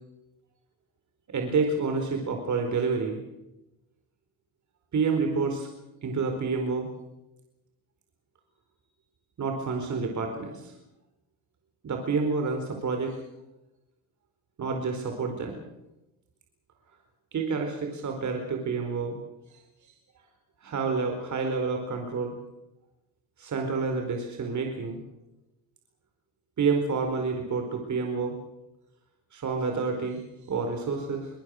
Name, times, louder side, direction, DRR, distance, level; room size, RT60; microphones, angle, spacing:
voice 1, 1.3-3.2 4.9-5.7 6.0-6.9 9.4-10.7 11.8-13.2 14.6-15.6 17.3-19.2 20.6-22.3 23.4-25.0 26.6-28.4 29.3-30.2 30.5-31.3, right 4 dB, 45° right, 4 dB, 4.5 m, -28 dB
24.0 x 19.0 x 6.6 m, 0.94 s
supercardioid pair, 80°, 42 cm